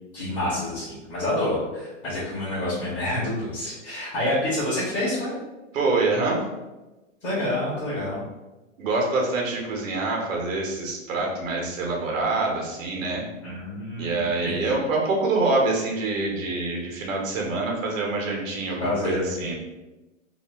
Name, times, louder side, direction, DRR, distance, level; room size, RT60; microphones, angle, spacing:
voice 1, 0.1-5.3 7.2-8.2 13.4-14.7 18.8-19.4, left 1 dB, 25° left, -9 dB, 0.9 m, -28 dB
voice 2, 5.7-6.4 8.8-13.2 14.0-19.6, right 3 dB, 85° right, 0 dB, 1.0 m, -25 dB
2.6 x 2.2 x 3.3 m, 1.1 s
supercardioid pair, 165°, 39 cm